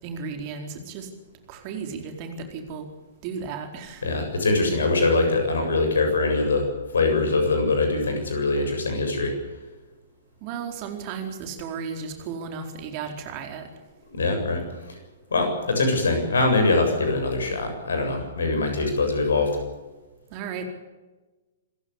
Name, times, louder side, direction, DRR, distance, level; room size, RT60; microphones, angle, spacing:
voice 1, 0.0-1.1 1.5-2.8 3.2-4.0 10.4-13.7 20.3-20.6, right 6 dB, 35° right, 5 dB, 4.3 m, -34 dB
voice 2, 4.0-6.7 6.9-9.3 14.1-15.0 15.3-19.6, left 3 dB, 65° left, 5 dB, 7.4 m, -23 dB
26.5 x 15.5 x 8.5 m, 1.2 s
figure-of-eight pair, 110°, 0 cm